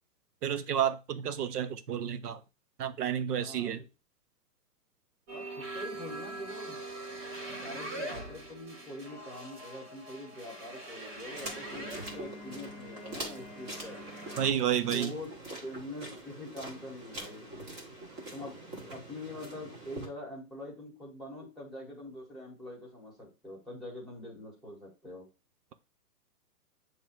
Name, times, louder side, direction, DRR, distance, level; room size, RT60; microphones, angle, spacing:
voice 1, 0.4-2.4 2.8-3.8 14.4-15.1, right 9 dB, 80° right, 0.9 m, -30 dB
voice 2, 3.3-3.8 5.3-6.8 7.6-14.0 14.9-15.3 15.6-17.5 18.3-25.3, left 1 dB, ahead, 1.6 m, -44 dB
sound 1, 5.3-14.5, right 1 dB, 45° right, 2.2 m, -42 dB
sound 2, 11.3-20.1, right 1 dB, 20° right, 1.6 m, -44 dB
7.5 x 3.2 x 4.5 m
hypercardioid pair, 150°, 47 cm